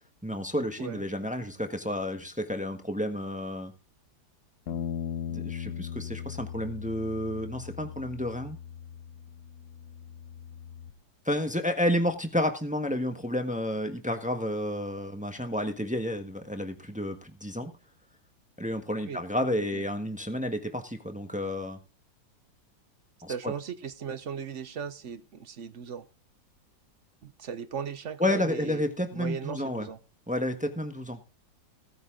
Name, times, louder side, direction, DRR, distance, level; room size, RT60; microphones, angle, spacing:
voice 1, 0.2-3.7 5.3-8.6 11.2-17.7 18.6-21.8 23.2-23.5 28.2-29.9 30.3-31.2, left 1 dB, 5° right, 6 dB, 1.2 m, -31 dB
Bass guitar, 4.7-10.9, left 8 dB, 60° left, 1.4 m, -39 dB
voice 2, 23.3-26.1 27.2-28.8 29.1-30.0, right 7 dB, 50° right, 13 dB, 1.0 m, -37 dB
17.5 x 9.4 x 3.8 m, 0.32 s
omnidirectional pair, 2.0 m